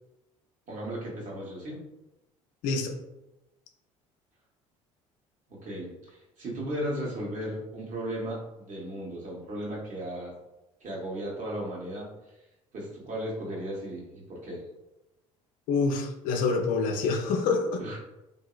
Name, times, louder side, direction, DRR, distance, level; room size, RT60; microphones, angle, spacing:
voice 1, 0.7-1.8 5.5-10.3 10.8-12.1 12.7-14.6 17.8-18.0, right 1 dB, 50° right, -3 dB, 1.2 m, -36 dB
voice 2, 15.7-17.8, left 4 dB, 60° left, 4 dB, 0.5 m, -26 dB
2.8 x 2.6 x 2.4 m, 0.94 s
hypercardioid pair, 65°, 16 cm